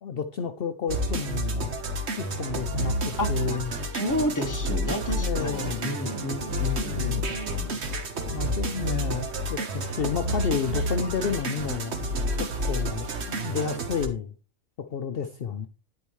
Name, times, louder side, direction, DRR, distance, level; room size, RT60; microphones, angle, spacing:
voice 1, 0.0-1.7 2.2-3.7 5.2-5.9 6.8-7.2 8.3-11.9 12.4-14.3 14.8-15.7, left 7 dB, 60° left, 0.8 m, -31 dB
sound 1, 0.9-14.1, equal, 65° right, 1.5 m, -29 dB
voice 2, 3.2-3.7 3.9-7.8, left 1 dB, 15° left, 1.2 m, -31 dB
10.5 x 8.7 x 3.1 m
omnidirectional pair, 1.2 m